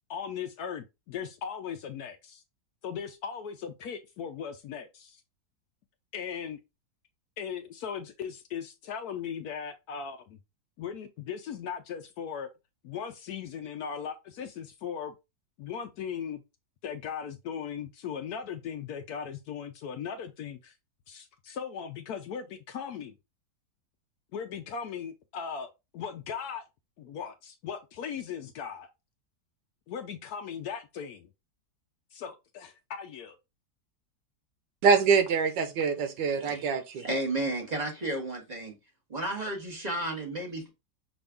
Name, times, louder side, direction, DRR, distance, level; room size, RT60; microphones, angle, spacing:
voice 1, 0.1-2.4 2.8-5.2 6.1-6.6 7.4-10.4 10.8-12.5 12.8-15.2 15.6-16.4 16.8-20.7 21.1-23.1 24.3-26.6 27.0-28.9 29.9-31.3 32.1-33.4, left 7 dB, 70° left, 1.0 m, -38 dB
voice 2, 34.8-37.0, right 5 dB, 85° right, 1.4 m, -24 dB
voice 3, 37.0-38.7 39.1-40.7, right 1 dB, 25° right, 1.3 m, -32 dB
6.0 x 2.6 x 3.4 m
omnidirectional pair, 1.9 m